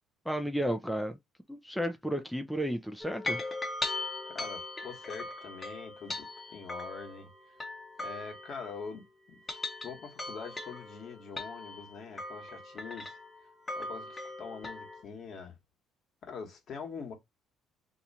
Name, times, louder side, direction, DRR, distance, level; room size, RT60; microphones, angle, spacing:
voice 1, 0.3-1.2 1.5-3.4, equal, ahead, 0.5 m, -32 dB
sound 1, 3.0-9.0 9.3-15.0, left 2 dB, 20° left, 0.9 m, -40 dB
voice 2, 4.2-7.3 8.0-9.4 9.8-13.2 13.8-15.6 16.2-17.1, left 5 dB, 55° left, 1.3 m, -44 dB
2.9 x 2.3 x 4.1 m
cardioid pair, 90°, 0 cm